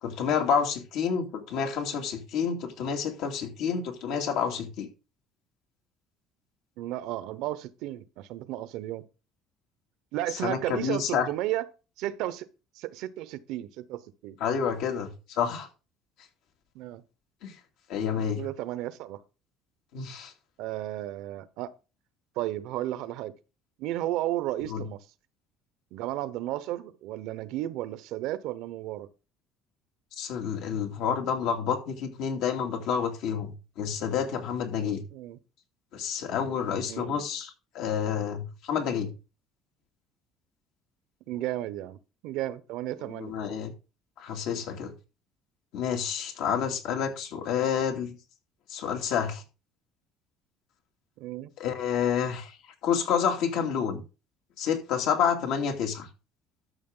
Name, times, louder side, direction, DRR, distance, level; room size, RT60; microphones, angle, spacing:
voice 1, 0.0-4.9 10.4-11.3 14.4-15.7 17.4-17.5 17.9-18.4 19.9-20.3 24.7-24.8 30.2-35.0 35.9-39.1 43.0-43.7 44.2-44.9 45.7-48.2 48.7-49.4 51.6-52.6 52.8-54.0 54.6-56.1, left 7 dB, 75° left, 2.5 m, -29 dB
voice 2, 6.8-9.0 10.1-11.7 12.0-12.5 12.7-14.4 16.7-17.0 18.4-19.2 20.6-21.7 22.4-23.3 23.8-25.0 25.9-29.1 35.1-35.4 36.9-37.1 41.3-42.0 42.2-43.4 51.2-51.5, right 14 dB, 75° right, 0.9 m, -33 dB
12.5 x 6.5 x 3.9 m
cardioid pair, 120°, 0 cm